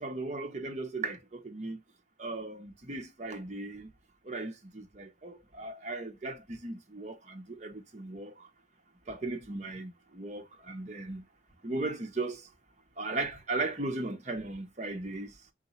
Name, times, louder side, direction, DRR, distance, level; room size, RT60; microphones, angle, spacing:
voice 1, 0.0-1.8 2.2-3.9 4.3-8.5 9.1-11.2 11.6-12.4 13.0-15.3, right 2 dB, 40° right, 0.8 m, -37 dB
3.9 x 2.6 x 4.1 m
head